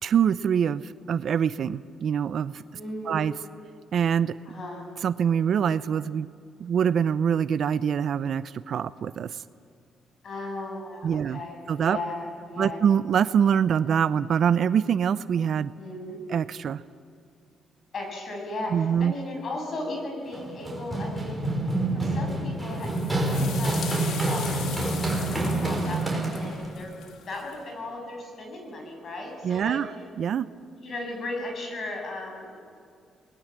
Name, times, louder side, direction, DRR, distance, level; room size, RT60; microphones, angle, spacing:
voice 1, 0.0-2.6 3.1-3.3 3.9-4.4 5.0-6.3 6.6-9.4 11.0-11.4 11.7-12.0 12.6-15.7 16.3-16.8 18.7-19.1 29.4-29.9 30.2-30.5, right 8 dB, 60° right, 15 dB, 0.7 m, -24 dB
voice 2, 2.7-3.2 4.5-4.8 10.2-12.8 15.7-16.2 17.9-21.4 21.9-27.0 27.3-29.8 30.8-32.5, left 2 dB, 50° left, 2 dB, 7.8 m, -36 dB
Run, 20.3-26.7, right 2 dB, 10° right, 6.0 m, -27 dB
sound 1, 22.7-27.5, left 7 dB, 80° left, 2.8 m, -40 dB
29.0 x 21.0 x 7.6 m, 2.3 s
cardioid pair, 90°, 0 cm